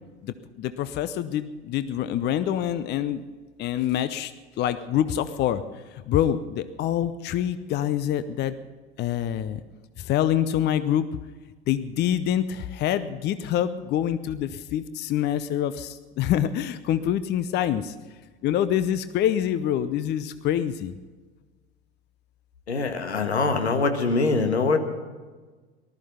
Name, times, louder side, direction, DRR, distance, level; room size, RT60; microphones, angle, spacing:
voice 1, 0.2-3.2 3.6-4.3 4.6-5.6 6.1-8.5 9.0-9.6 10.0-11.1 11.7-17.9 18.4-20.9, left 10 dB, 30° left, 13 dB, 0.7 m, -26 dB
voice 2, 22.7-24.8, left 4 dB, 75° left, 6 dB, 1.8 m, -23 dB
19.5 x 13.0 x 5.6 m, 1.3 s
figure-of-eight pair, 80°, 33 cm